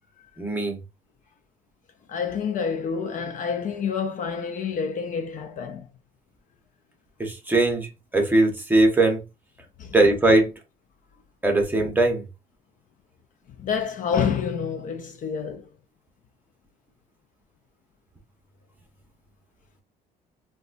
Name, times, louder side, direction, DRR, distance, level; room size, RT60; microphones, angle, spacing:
voice 1, 0.4-0.8 7.2-7.9 8.1-9.2 9.9-10.5 11.4-12.2, right 2 dB, 10° right, 0.9 m, -20 dB
voice 2, 2.1-5.9 9.8-9.9 13.6-15.7, left 6 dB, 50° left, 0.5 m, -28 dB
3.7 x 2.3 x 2.5 m
cardioid pair, 110°, 17 cm